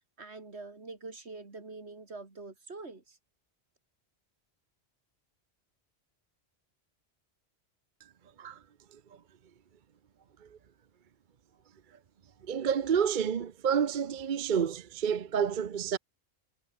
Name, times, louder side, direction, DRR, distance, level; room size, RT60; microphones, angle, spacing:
voice 1, 0.2-3.2, right 3 dB, 80° right, 3.1 m, -45 dB
voice 2, 12.5-16.0, right 7 dB, 50° right, 0.9 m, -29 dB
omnidirectional pair, 1.1 m